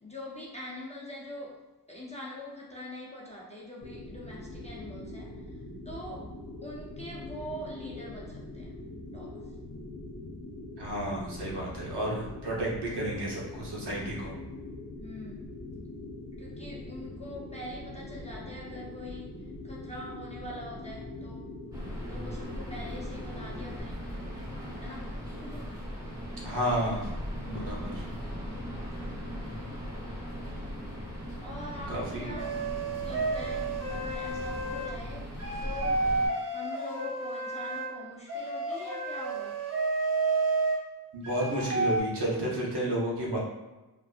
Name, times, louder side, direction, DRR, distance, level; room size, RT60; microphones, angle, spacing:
voice 1, 0.0-1.6 1.9-5.4 5.9-6.3 6.6-8.8 9.1-9.4 15.0-15.6 16.4-19.3 19.6-21.5 22.1-24.2 24.8-25.1 25.4-25.7 31.4-32.6 33.0-35.3 35.6-36.1 36.5-39.6, left 1 dB, 20° left, -5 dB, 0.4 m, -43 dB
sound 1, 3.8-23.8, left 2 dB, 70° left, 0.7 m, -43 dB
voice 2, 10.8-14.3 26.4-27.1 27.5-28.1 31.9-32.4 41.1-43.4, right 1 dB, 75° right, -4 dB, 0.9 m, -31 dB
sound 2, 21.7-36.3, equal, 10° right, 0.8 m, -38 dB
sound 3, 32.4-34.9 35.4-37.9 38.3-40.8 41.2-42.0, right 3 dB, 40° right, 0.6 m, -31 dB
2.7 x 2.5 x 2.3 m, 1.1 s
wide cardioid pair, 180°, 40 cm